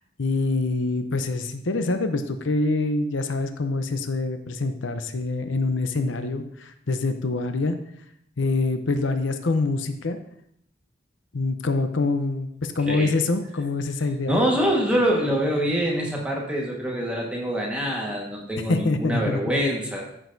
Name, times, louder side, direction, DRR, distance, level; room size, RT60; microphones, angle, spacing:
voice 1, 0.2-7.7 8.4-10.2 11.3-14.4 18.7-19.6, left 3 dB, 90° left, 8 dB, 0.7 m, -25 dB
voice 2, 14.3-20.0, equal, 5° right, -3 dB, 1.5 m, -25 dB
13.0 x 6.3 x 2.7 m, 0.72 s
head